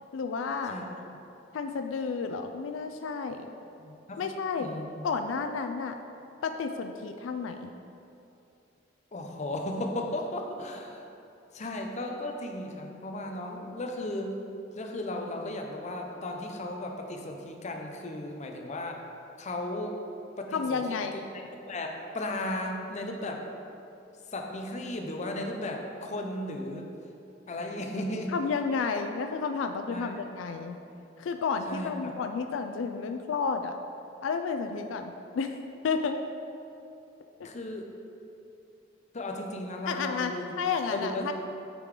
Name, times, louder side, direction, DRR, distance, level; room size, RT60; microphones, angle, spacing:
voice 1, 0.1-0.8 1.5-3.5 4.2-4.7 5.0-6.0 6.4-7.7 20.5-21.2 28.3-30.8 31.2-33.7 34.2-35.6 35.8-36.2 39.9-41.3, left 5 dB, 85° left, 7 dB, 0.4 m, -31 dB
voice 2, 3.8-4.2 4.6-5.0 9.1-11.1 11.5-14.4 14.8-19.0 19.4-20.0 20.4-23.4 24.3-26.9 27.5-28.3 29.9-30.2 31.7-31.9 37.4-37.9 39.1-40.6 40.9-41.3, left 1 dB, 40° left, 2 dB, 0.7 m, -35 dB
8.2 x 3.8 x 4.7 m, 2.8 s
head